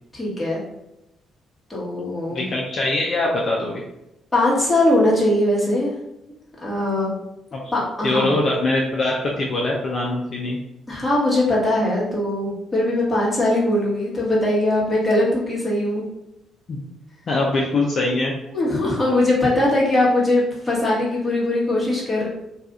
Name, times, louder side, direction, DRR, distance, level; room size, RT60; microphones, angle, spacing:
voice 1, 0.1-0.6 1.7-2.5 4.3-5.9 6.6-7.1 7.7-8.3 10.9-16.0 18.5-22.3, left 1 dB, 20° left, -5 dB, 1.3 m, -20 dB
voice 2, 2.3-3.8 8.0-10.6 16.7-16.8 17.3-18.3, left 2 dB, 50° left, -3 dB, 0.6 m, -22 dB
2.7 x 2.4 x 3.6 m, 0.88 s
cardioid pair, 90°, 0 cm